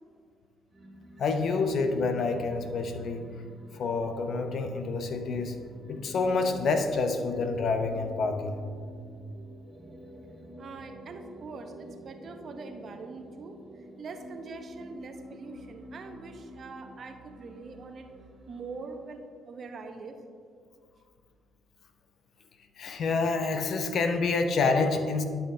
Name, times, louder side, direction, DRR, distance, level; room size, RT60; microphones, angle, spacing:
sound 1, 0.7-19.3, equal, 30° right, 1.9 m, -49 dB
voice 1, 1.2-3.3 3.7-5.6 5.9-8.6 22.8-25.2, left 4 dB, 60° left, 6 dB, 0.7 m, -28 dB
voice 2, 10.6-18.1 18.5-20.2, right 4 dB, 55° right, 5 dB, 0.8 m, -43 dB
12.5 x 5.7 x 2.7 m, 2.1 s
hypercardioid pair, 55°, 0 cm